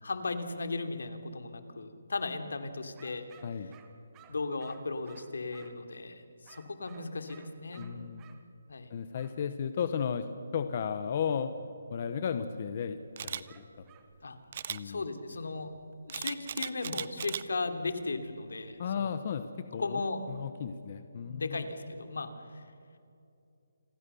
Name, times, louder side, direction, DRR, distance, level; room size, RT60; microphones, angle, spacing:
voice 1, 0.0-3.2 4.3-7.9 8.7-8.9 14.2-14.4 14.8-15.7 16.0-19.1 19.8-20.2 21.2-22.7, left 3 dB, 70° left, 8 dB, 2.9 m, -36 dB
sound 1, 3.0-5.9 6.5-8.4 9.1-9.4 13.5-14.1, right 9 dB, 10° right, 1.2 m, -58 dB
voice 2, 7.8-8.2 8.9-10.3 10.5-11.5 11.9-13.0 13.2-13.8 14.7-15.0 18.8-19.4 19.7-20.0 20.3-21.6, left 7 dB, 30° left, 10 dB, 0.9 m, -34 dB
Camera, 13.2-13.4 14.5-14.8 16.1-17.4 17.9-18.2, right 8 dB, 30° right, 0.6 m, -37 dB
28.5 x 21.5 x 6.9 m, 2.6 s
hypercardioid pair, 180°, 0 cm